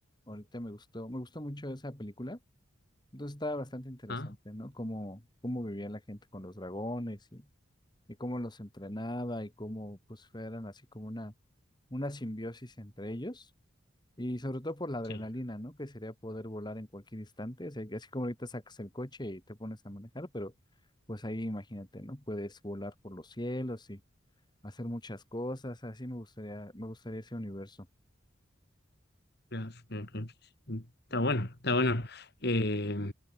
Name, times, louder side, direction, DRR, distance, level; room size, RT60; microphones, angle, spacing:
voice 1, 0.3-2.4 3.1-7.5 8.2-11.3 11.9-13.5 14.2-20.5 21.1-24.0 24.6-27.9, left 1 dB, 20° left, 2.6 m, -39 dB
voice 2, 29.5-30.3 30.7-30.8 31.1-33.1, left 2 dB, 55° left, 3.1 m, -31 dB
head